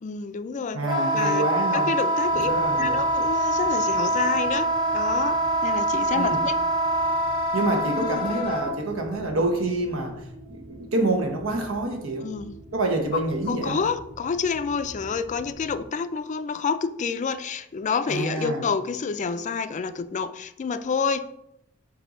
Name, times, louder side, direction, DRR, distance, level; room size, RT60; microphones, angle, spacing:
voice 1, 0.0-0.8 1.1-1.5 1.7-4.7 4.9-6.6 7.9-8.3 12.2-12.6 13.1-21.2, left 5 dB, 35° left, 0.3 m, -28 dB
voice 2, 0.7-2.0 2.3-3.0 6.1-6.4 7.5-12.3 12.7-13.8 18.1-18.6, right 2 dB, 90° right, 1.1 m, -27 dB
Wind instrument woodwind instrument, 0.8-8.7, right 1 dB, 25° right, 1.3 m, -24 dB
sound 1, 2.2-15.8, right 1 dB, 50° right, 2.0 m, -45 dB
7.5 x 2.7 x 5.0 m
head